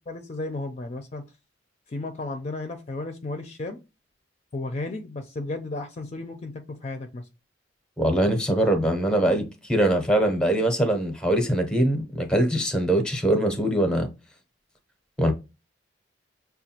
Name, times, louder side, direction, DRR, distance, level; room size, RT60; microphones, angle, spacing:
voice 1, 0.1-1.2 1.9-3.8 4.5-7.2, left 2 dB, 35° left, 0.4 m, -34 dB
voice 2, 8.0-14.1 15.2-15.3, right 1 dB, 5° left, 0.7 m, -22 dB
5.9 x 2.3 x 2.8 m
head